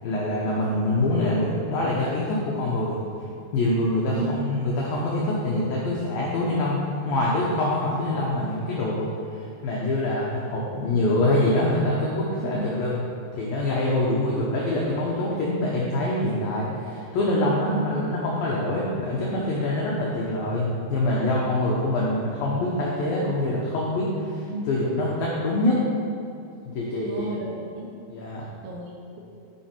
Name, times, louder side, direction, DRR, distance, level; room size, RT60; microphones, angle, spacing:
voice 1, 0.0-3.0 3.5-9.1 9.6-13.0 13.3-25.8 26.7-27.3 28.1-28.5, left 1 dB, 90° left, -4 dB, 2.0 m, -25 dB
voice 2, 27.0-27.9 28.6-29.2, right 2 dB, 75° right, -2 dB, 2.4 m, -33 dB
11.0 x 5.7 x 4.5 m, 2.6 s
omnidirectional pair, 5.7 m